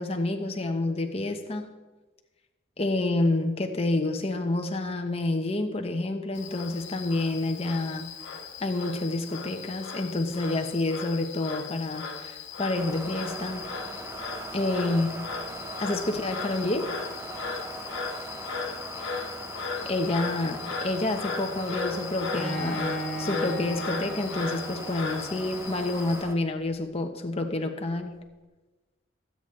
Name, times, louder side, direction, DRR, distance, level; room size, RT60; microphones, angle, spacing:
voice 1, 0.0-1.7 2.8-8.1 8.6-13.7 14.5-15.2 15.8-16.9 19.8-22.9 23.2-28.1, left 2 dB, 30° left, 4 dB, 1.0 m, -28 dB
Frog, 6.4-26.2, left 5 dB, 65° left, 1.4 m, -37 dB
sound 1, 12.7-26.3, right 2 dB, 15° right, 0.6 m, -40 dB
Bowed string instrument, 22.3-25.3, right 1 dB, 5° left, 1.3 m, -36 dB
20.5 x 8.4 x 3.2 m, 1.2 s
head